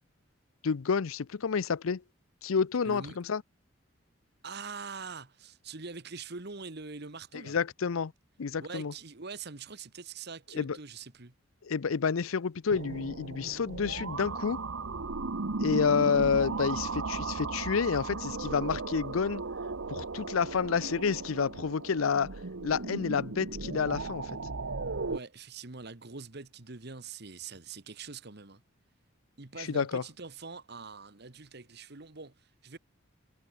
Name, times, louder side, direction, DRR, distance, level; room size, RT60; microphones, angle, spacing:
voice 1, 0.6-2.0 2.4-3.4 7.3-8.1 8.4-8.9 10.5-10.8 11.6-14.6 15.6-19.4 19.9-24.3 29.6-30.0, left 5 dB, 90° left, 0.6 m, -29 dB
voice 2, 2.8-3.2 4.4-7.6 8.6-11.3 25.1-28.6 29.4-32.8, right 4 dB, 55° right, 1.4 m, -44 dB
sound 1, 12.7-25.2, right 3 dB, 75° right, 1.1 m, -36 dB
head